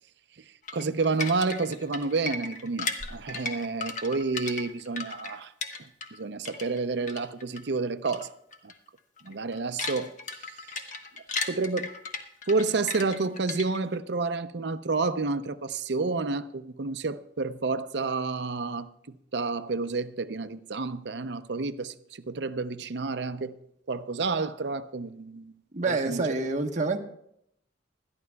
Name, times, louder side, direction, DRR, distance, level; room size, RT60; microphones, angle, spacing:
sound 1, 0.7-6.2 6.5-7.6 8.1-8.3 8.5-8.7 9.2-14.0, left 3 dB, 45° left, 1.1 m, -36 dB
voice 1, 0.7-5.5 6.1-8.3 8.6-8.7 9.2-10.1 11.5-11.9 12.5-23.6 23.9-25.5 25.8-26.2, right 3 dB, 65° right, 0.6 m, -30 dB
voice 2, 25.7-27.0, right 3 dB, 40° right, 1.2 m, -27 dB
20.5 x 13.0 x 2.3 m
head